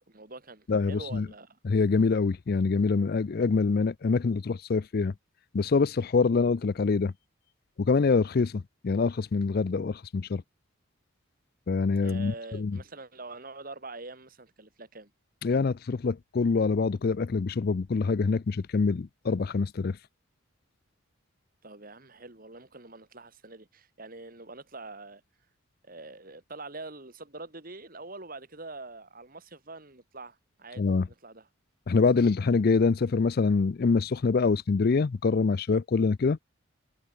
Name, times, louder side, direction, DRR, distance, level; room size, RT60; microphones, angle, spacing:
voice 1, 0.1-1.6 12.0-15.1 21.6-25.2 25.8-31.5, right 3 dB, 40° right, 2.7 m, -44 dB
voice 2, 0.7-1.3 1.6-5.1 5.5-7.1 7.8-10.4 11.7-12.8 15.4-20.0 30.8-31.1 31.9-36.4, left 4 dB, 45° left, 0.4 m, -25 dB
head